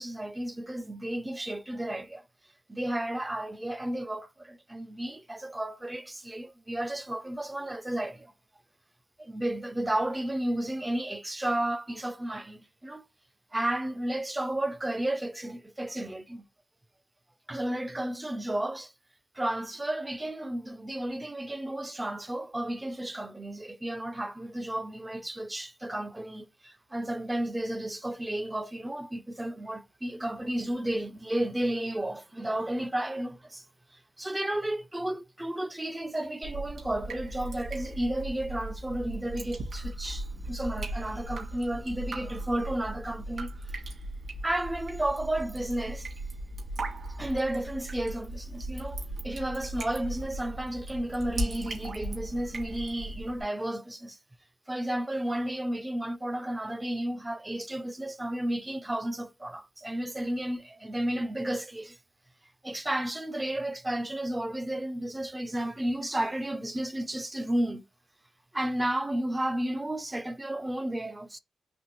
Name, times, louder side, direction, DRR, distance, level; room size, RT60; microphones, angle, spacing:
voice 1, 0.0-2.2 2.7-8.3 9.2-13.0 13.5-16.5 17.5-18.9 19.4-33.6 34.2-43.5 44.4-46.1 47.2-54.2 54.7-62.0 62.6-67.8 68.5-71.4, right 1 dB, 10° right, 0.4 m, -32 dB
Drip, 36.4-53.4, right 1 dB, 60° right, 1.9 m, -38 dB
4.2 x 3.4 x 2.9 m
wide cardioid pair, 130°, 0 cm